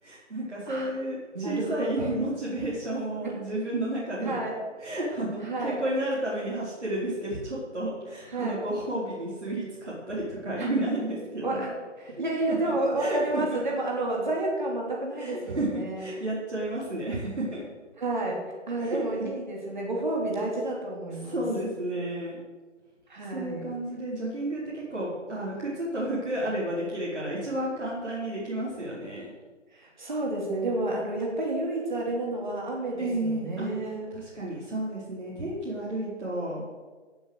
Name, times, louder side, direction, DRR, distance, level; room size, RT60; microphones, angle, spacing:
voice 1, 0.0-4.3 4.8-11.6 12.2-13.6 15.2-17.6 18.8-19.0 21.2-22.4 23.3-29.3 33.0-33.7 34.1-36.6, right 1 dB, 65° right, -7 dB, 4.7 m, -32 dB
voice 2, 1.3-2.1 4.2-4.6 5.4-5.8 8.3-8.6 10.6-10.7 11.4-16.0 18.0-21.4 23.1-23.7 29.7-34.1, right 2 dB, 40° right, -1 dB, 3.0 m, -30 dB
16.5 x 6.7 x 8.1 m, 1.4 s
figure-of-eight pair, 175°, 37 cm